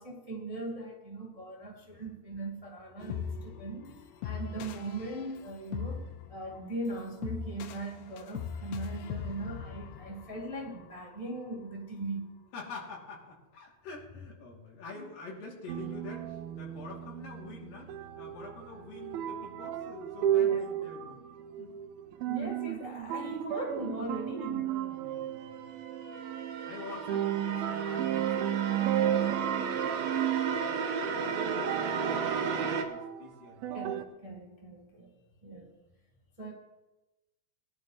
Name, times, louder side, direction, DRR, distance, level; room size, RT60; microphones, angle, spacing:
voice 1, 0.0-12.3 14.9-15.1 20.4-20.6 22.3-24.7 33.7-35.1 35.4-35.7 36.4-36.5, right 2 dB, 30° right, -4 dB, 0.6 m, -39 dB
sound 1, 3.0-11.2, left 7 dB, 85° left, 2.8 m, -41 dB
voice 2, 12.5-21.2 21.6-21.7 24.6-25.7 26.6-34.0, left 3 dB, 65° left, -3 dB, 4.2 m, -47 dB
sound 2, 15.7-34.0, right 11 dB, 85° right, 2.6 m, -34 dB
sound 3, 25.1-32.9, right 5 dB, 70° right, 1.6 m, -34 dB
21.0 x 11.0 x 3.1 m, 1.1 s
omnidirectional pair, 4.4 m